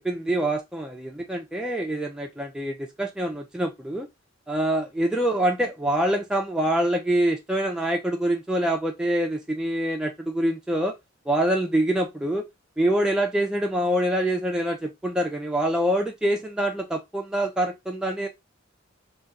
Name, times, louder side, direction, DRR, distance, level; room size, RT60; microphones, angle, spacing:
voice 1, 0.0-4.1 4.5-11.0 11.3-12.4 12.8-18.3, right 1 dB, 5° right, 0.3 m, -25 dB
4.0 x 2.2 x 2.3 m
head